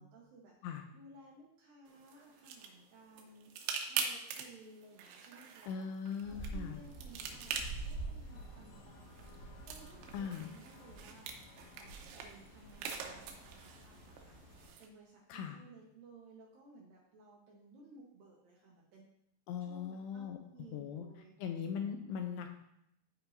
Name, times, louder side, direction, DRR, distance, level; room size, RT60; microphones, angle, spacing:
voice 1, 0.0-3.5 3.8-5.8 6.2-19.1 19.6-21.3 21.8-22.2, right 2 dB, 70° right, -3 dB, 2.2 m, -58 dB
sound 1, 1.9-14.9, right 6 dB, 90° right, 3.2 m, -45 dB
voice 2, 5.7-6.8 10.1-10.5 15.3-15.6 19.5-20.4 20.7-21.1 21.4-22.6, left 7 dB, 85° left, 5 dB, 2.5 m, -40 dB
sound 2, 6.2-14.7, right 2 dB, 70° left, 3.2 m, -48 dB
13.5 x 4.4 x 2.6 m, 0.78 s
omnidirectional pair, 5.1 m